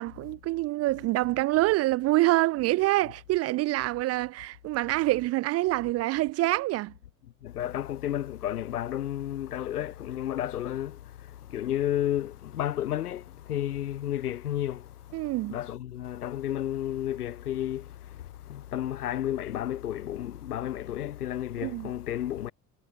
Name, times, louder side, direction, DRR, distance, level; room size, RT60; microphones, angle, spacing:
voice 1, 0.0-6.9 15.1-15.6 21.6-21.9, right 18 dB, 35° right, 0.4 m, -26 dB
voice 2, 7.4-22.5, left 12 dB, 75° left, 2.5 m, -32 dB
figure-of-eight pair, 60°, 46 cm